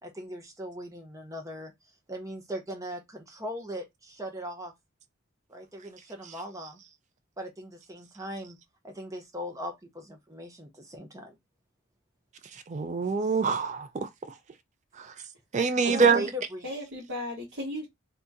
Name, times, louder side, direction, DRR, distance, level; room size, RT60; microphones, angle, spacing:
voice 1, 0.0-1.7 2.1-4.7 5.5-6.8 7.4-8.6 8.8-11.3 15.9-16.7, equal, 15° right, 0.7 m, -39 dB
voice 2, 12.7-14.1 15.0-15.1 15.5-16.2, right 5 dB, 35° right, 0.3 m, -25 dB
voice 3, 15.8-16.3 16.6-17.9, left 1 dB, 55° right, 1.3 m, -36 dB
2.8 x 2.7 x 3.5 m
head